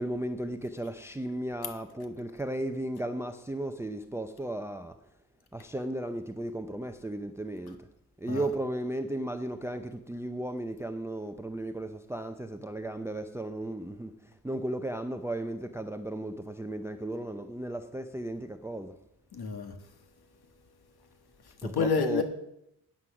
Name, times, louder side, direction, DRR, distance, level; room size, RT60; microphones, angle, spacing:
voice 1, 0.0-4.9 5.5-7.9 8.2-14.2 14.4-18.9 21.6-22.2, right 1 dB, 5° right, 0.5 m, -35 dB
voice 2, 19.3-19.8 21.6-22.2, left 5 dB, 85° left, 1.6 m, -29 dB
10.0 x 9.2 x 5.9 m
wide cardioid pair, 130°, 37 cm